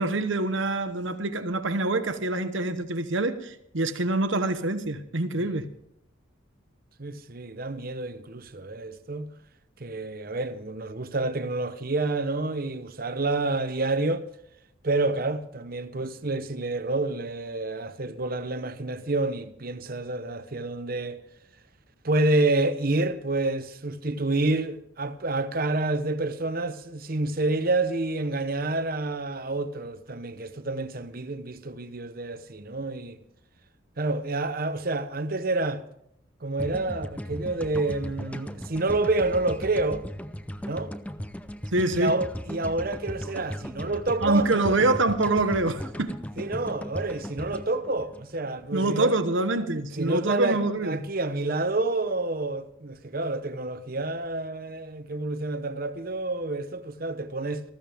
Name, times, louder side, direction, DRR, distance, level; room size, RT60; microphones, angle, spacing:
voice 1, 0.0-5.7 41.7-42.1 44.2-46.2 48.7-51.0, right 2 dB, 65° right, 1.1 m, -25 dB
voice 2, 7.0-9.3 9.8-14.2 14.8-21.2 22.0-33.2 34.0-35.8 36.4-40.1 40.6-40.9 41.9-44.6 46.4-49.1 50.0-57.6, right 2 dB, 45° right, 0.9 m, -28 dB
sound 1, 36.6-48.8, equal, 5° left, 0.5 m, -37 dB
19.5 x 14.5 x 3.5 m
head